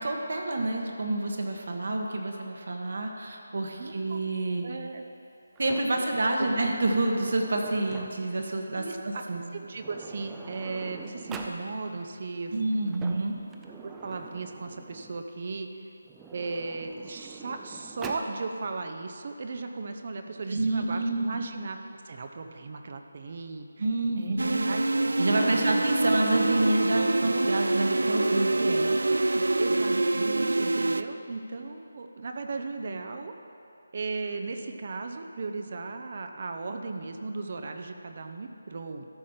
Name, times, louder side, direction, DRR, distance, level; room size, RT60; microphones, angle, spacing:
voice 1, 0.0-4.6 5.6-9.4 12.5-13.3 20.5-21.4 23.8-24.7 25.2-28.9, right 2 dB, 65° right, 2 dB, 1.3 m, -28 dB
voice 2, 3.8-4.2 4.6-5.0 5.9-6.1 6.4-6.5 8.7-9.2 9.5-13.0 13.8-15.7 16.3-23.9 24.2-24.8 25.2-25.7 29.6-33.3 33.9-39.1, right 3 dB, 45° right, 5 dB, 0.7 m, -36 dB
Sliding door, 5.6-8.4 9.4-9.5 9.7-11.6 12.7-15.3 16.0-18.3, right 4 dB, 10° right, 0.4 m, -45 dB
sound 1, 24.4-31.0, right 2 dB, 80° right, 0.4 m, -25 dB
13.0 x 5.1 x 5.7 m, 2.7 s
figure-of-eight pair, 165°, 0 cm